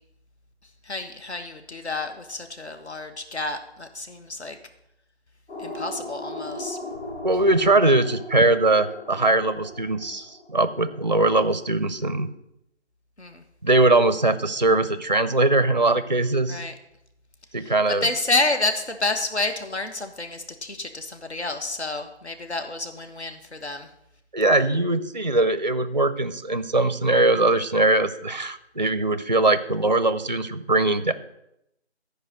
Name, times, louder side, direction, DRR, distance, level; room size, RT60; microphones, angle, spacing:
voice 1, 0.9-4.6 5.6-6.8 13.2-13.4 16.5-16.7 18.0-23.9, left 2 dB, 70° left, 7 dB, 1.3 m, -29 dB
sound 1, 5.5-11.3, left 1 dB, 90° left, 4.5 m, -38 dB
voice 2, 7.2-12.3 13.6-16.6 17.5-18.1 24.3-31.1, right 2 dB, 40° right, 12 dB, 0.5 m, -21 dB
13.0 x 5.0 x 6.4 m, 0.83 s
figure-of-eight pair, 170°, 34 cm